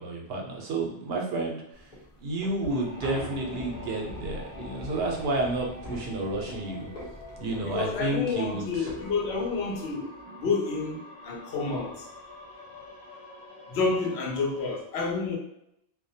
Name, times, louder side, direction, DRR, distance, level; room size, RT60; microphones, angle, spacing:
voice 1, 0.0-1.6 2.2-6.9 7.4-8.9, right 2 dB, 75° right, -1 dB, 0.8 m, -30 dB
sound 1, 1.8-9.9, equal, 45° left, 0.8 m, -43 dB
sound 2, 2.7-14.8, left 2 dB, 70° left, 1.1 m, -47 dB
voice 2, 7.6-11.9 13.7-15.4, left 4 dB, 90° left, 0 dB, 0.9 m, -29 dB
2.2 x 2.1 x 2.6 m, 0.79 s
omnidirectional pair, 1.0 m